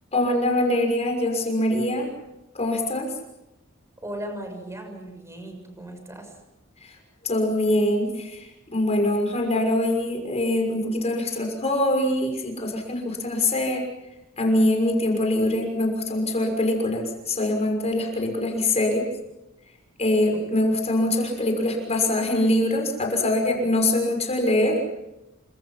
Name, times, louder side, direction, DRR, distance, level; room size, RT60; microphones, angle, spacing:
voice 1, 0.1-2.1 2.5-3.1 6.8-6.9 7.2-13.9 14.4-19.1 20.0-24.8, left 1 dB, 30° left, 3 dB, 6.1 m, -23 dB
voice 2, 4.0-6.3 20.3-20.6, right 1 dB, 15° right, 5 dB, 6.7 m, -37 dB
30.0 x 26.0 x 5.9 m, 0.92 s
head